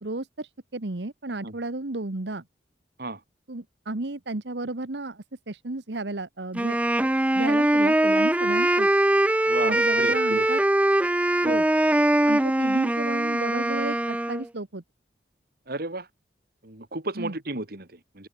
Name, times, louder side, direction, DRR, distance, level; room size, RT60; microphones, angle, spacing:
voice 1, 0.0-2.4 3.5-6.8 7.3-8.9 9.6-10.6 11.4-11.7 12.3-14.8 17.2-17.4, right 2 dB, 75° right, 1.3 m, -33 dB
Wind instrument woodwind instrument, 6.5-14.5, right 1 dB, 10° right, 0.4 m, -22 dB
voice 2, 9.5-10.5 11.4-11.6 15.7-16.1 16.6-18.3, right 2 dB, 60° right, 3.0 m, -34 dB
open air
head